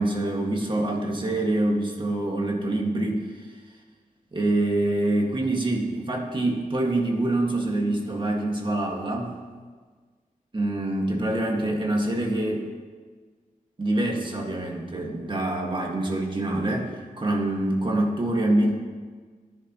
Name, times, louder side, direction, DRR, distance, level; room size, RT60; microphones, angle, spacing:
voice 1, 0.0-3.3 4.3-9.4 10.5-12.7 13.8-18.7, right 1 dB, 35° right, -1 dB, 2.0 m, -25 dB
18.5 x 10.5 x 3.1 m, 1.5 s
wide cardioid pair, 115°, 15 cm